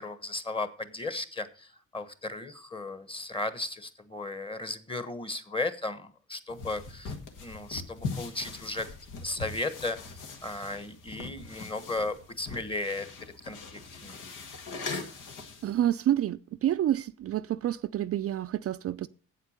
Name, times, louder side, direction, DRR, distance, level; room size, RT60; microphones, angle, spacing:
voice 1, 0.0-8.9 9.2-14.2, left 2 dB, 15° left, 1.3 m, -35 dB
sound 1, 6.5-15.8, left 4 dB, 80° left, 1.8 m, -41 dB
voice 2, 15.6-19.1, right 12 dB, 50° right, 0.4 m, -28 dB
8.2 x 8.1 x 6.5 m
cardioid pair, 90°, 30 cm